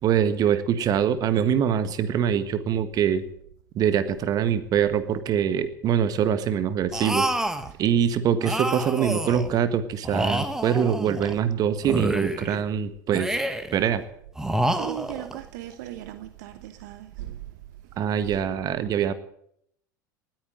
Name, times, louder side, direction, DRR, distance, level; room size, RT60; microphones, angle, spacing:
voice 1, 0.0-3.3 3.7-7.3 7.8-13.4 13.7-14.0 18.0-19.1, right 8 dB, 35° right, 1.5 m, -24 dB
sound 1, 6.9-7.7 8.4-9.5 10.0-11.4 11.8-12.6 13.1-13.8 14.4-15.4, right 1 dB, 5° right, 1.4 m, -28 dB
voice 2, 14.7-17.4, right 13 dB, 60° right, 1.1 m, -37 dB
19.5 x 9.5 x 7.8 m
figure-of-eight pair, 85°, 11 cm